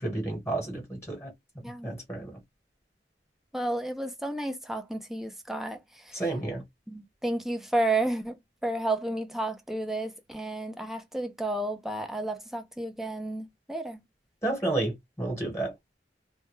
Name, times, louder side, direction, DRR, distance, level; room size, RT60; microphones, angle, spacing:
voice 1, 0.0-1.3 1.8-2.3 6.1-6.6 14.4-15.7, right 2 dB, 15° left, 1.1 m, -31 dB
voice 2, 3.5-6.2 6.9-8.4 8.6-14.0, right 2 dB, ahead, 0.4 m, -32 dB
2.2 x 2.2 x 3.0 m
head